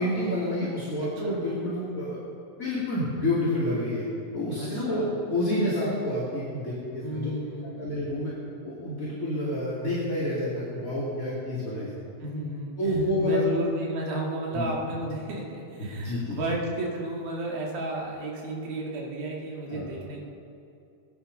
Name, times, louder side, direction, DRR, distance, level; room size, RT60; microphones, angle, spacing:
voice 1, 0.0-2.2 2.6-4.0 4.3-7.3 7.8-8.3 8.6-11.9 12.8-13.4 14.5-14.7 15.9-16.3 19.7-19.9, left 1 dB, 25° left, -8 dB, 2.9 m, -28 dB
voice 2, 1.0-1.4 4.6-5.2 7.0-7.9 12.2-12.8 13.2-20.2, right 2 dB, 90° right, -2 dB, 4.1 m, -33 dB
19.5 x 11.0 x 5.5 m, 2.6 s
omnidirectional pair, 4.1 m